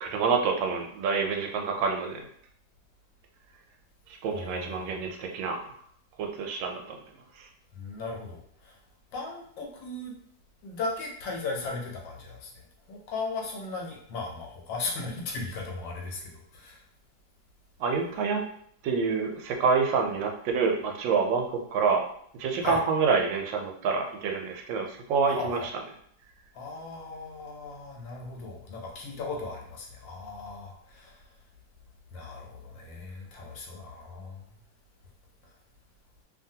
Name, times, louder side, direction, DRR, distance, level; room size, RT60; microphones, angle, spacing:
voice 1, 0.0-2.2 4.2-5.6 6.2-7.0 17.8-18.4 18.8-22.0 22.4-25.6, right 5 dB, 85° right, 2 dB, 1.3 m, -27 dB
voice 2, 4.3-4.9 7.7-8.7 9.1-10.1 10.6-16.8 22.6-22.8 25.3-25.7 26.5-31.2 32.1-34.4, left 3 dB, 80° left, 0 dB, 1.4 m, -37 dB
2.8 x 2.6 x 2.7 m, 0.66 s
omnidirectional pair, 2.0 m